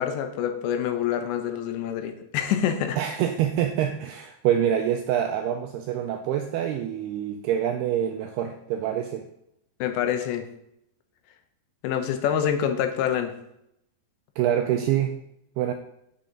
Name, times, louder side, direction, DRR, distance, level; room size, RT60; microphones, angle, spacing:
voice 1, 0.0-3.0 9.8-10.5 11.8-13.3, left 9 dB, 80° left, 7 dB, 3.0 m, -26 dB
voice 2, 3.0-9.3 14.4-15.2 15.6-15.7, right 10 dB, 85° right, 5 dB, 2.3 m, -26 dB
10.5 x 6.3 x 3.8 m, 0.79 s
omnidirectional pair, 5.2 m